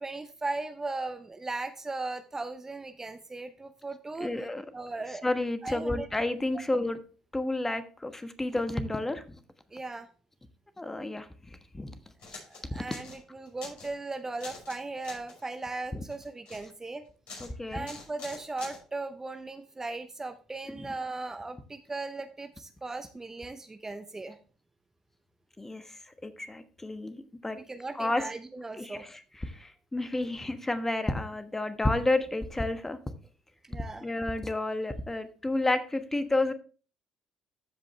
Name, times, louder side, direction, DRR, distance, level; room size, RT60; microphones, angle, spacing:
voice 1, 0.0-4.3 4.7-5.3 5.6-6.1 9.7-10.1 12.5-17.0 17.7-24.4 27.6-29.0 33.6-34.1, right 3 dB, 20° right, 9 dB, 0.8 m, -37 dB
voice 2, 4.2-4.6 5.2-7.0 7.3-9.4 10.8-11.3 11.7-12.0 15.9-16.0 17.4-17.8 20.8-20.9 25.6-27.6 28.0-28.2 28.8-29.2 29.5-33.0 34.0-36.5, left 2 dB, 15° left, 9 dB, 1.3 m, -31 dB
sound 1, 12.2-12.6 12.9-13.2 13.5-14.0 14.4-14.8 15.0-15.5 16.1-16.7 17.3-17.5 17.8-18.8, left 4 dB, 60° left, 5.5 m, -45 dB
14.0 x 5.2 x 3.2 m, 0.37 s
hypercardioid pair, 60°, 2 cm